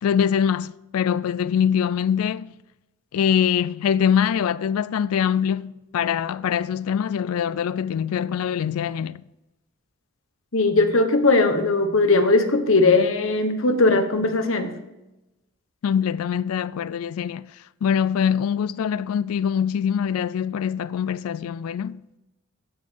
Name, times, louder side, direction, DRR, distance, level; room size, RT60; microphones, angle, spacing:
voice 1, 0.0-2.5 3.1-9.2 15.8-17.5 17.8-22.0, left 8 dB, 85° left, 0.3 m, -23 dB
voice 2, 10.5-14.7, left 3 dB, 65° left, 1.2 m, -19 dB
15.5 x 5.4 x 5.2 m
head